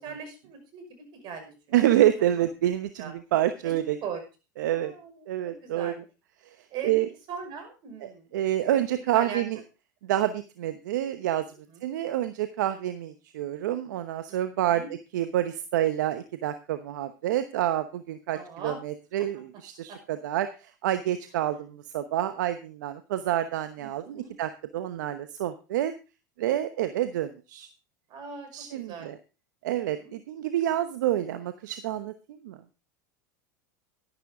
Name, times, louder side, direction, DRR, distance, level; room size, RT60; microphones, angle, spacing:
voice 1, 0.0-1.8 3.0-3.1 3.6-3.7 4.0-4.2 4.7-6.0 6.7-6.9 7.3-8.3 8.7-9.4 11.7-11.8 14.3-14.9 18.3-18.8 19.2-19.3 19.9-20.0 23.8-24.3 28.1-29.1 29.8-30.1, right 6 dB, 50° right, 6 dB, 5.7 m, -40 dB
voice 2, 1.7-4.0 4.6-4.9 5.3-5.9 6.4-6.6 6.8-7.1 8.0-9.6 10.0-11.4 11.8-14.8 15.1-18.4 18.6-25.9 26.4-27.7 28.5-29.2 29.6-32.1 32.4-32.6, right 12 dB, 75° right, 10 dB, 1.0 m, -28 dB
12.0 x 11.0 x 3.7 m, 0.31 s
hypercardioid pair, 95°, 10 cm